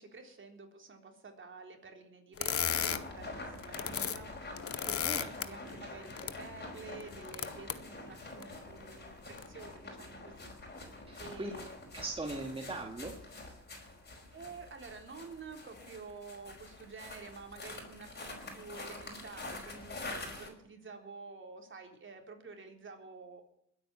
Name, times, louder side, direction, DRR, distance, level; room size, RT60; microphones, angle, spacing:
voice 1, 0.0-10.9 11.2-12.0 14.3-23.4, right 4 dB, 40° right, 4 dB, 3.9 m, -50 dB
sound 1, 2.4-3.0 3.5-4.2 4.5-5.4 6.1-6.3 7.0-7.7 8.4-8.5 9.3-9.4, left 8 dB, 50° left, 1.2 m, -34 dB
sound 2, 2.6-20.5, left 2 dB, 35° left, 5.5 m, -46 dB
voice 2, 11.1-11.5 11.9-13.6, right 2 dB, 20° right, 2 dB, 2.2 m, -40 dB
21.0 x 9.0 x 7.1 m, 0.72 s
cardioid pair, 90°, 30 cm